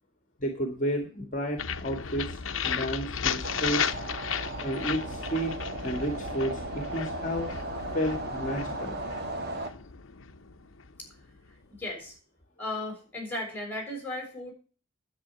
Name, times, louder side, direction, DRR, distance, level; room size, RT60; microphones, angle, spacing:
voice 1, 0.4-2.4 2.6-3.8 4.6-5.5 5.8-7.5 7.9-9.0, equal, 40° left, 5 dB, 1.8 m, -31 dB
sound 1, 1.6-11.4, left 7 dB, 70° left, 0.9 m, -35 dB
sound 2, 3.4-9.7, right 2 dB, 50° right, 1.8 m, -37 dB
voice 2, 11.8-12.2 12.6-14.5, left 1 dB, 10° left, 1 dB, 6.5 m, -35 dB
10.5 x 8.7 x 7.0 m, 0.39 s
head